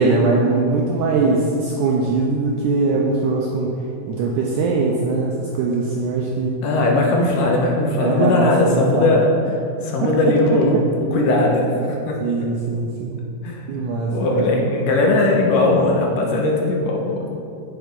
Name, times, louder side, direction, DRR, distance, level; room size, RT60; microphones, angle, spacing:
voice 1, 0.0-3.7 4.1-6.5 7.2-7.3 8.0-9.1 10.0-10.1 12.2-13.2 13.7-14.5, right 3 dB, 80° right, -1 dB, 1.8 m, -21 dB
voice 2, 6.6-9.3 9.8-12.2 13.4-13.6 14.1-17.2, left 2 dB, 70° left, -1 dB, 2.4 m, -18 dB
8.0 x 7.5 x 5.3 m, 2.5 s
omnidirectional pair, 4.4 m